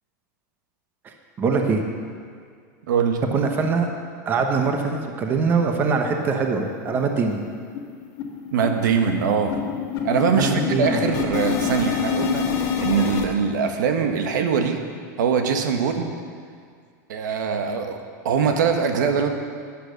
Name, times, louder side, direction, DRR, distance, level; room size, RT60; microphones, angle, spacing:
voice 1, 1.0-1.8 3.3-3.9 4.3-7.4 10.4-11.0, right 5 dB, 20° right, 3 dB, 1.0 m, -23 dB
voice 2, 2.9-3.2 8.5-9.6 10.0-14.8 15.2-16.1 17.1-18.0 18.2-19.3, right 6 dB, 85° right, 5 dB, 1.5 m, -22 dB
sound 1, 6.0-6.1 6.4-6.5 6.9-7.1 7.3-13.3, left 7 dB, 35° left, 1.5 m, -27 dB
11.5 x 10.5 x 6.7 m, 2.1 s
supercardioid pair, 165°, 10 cm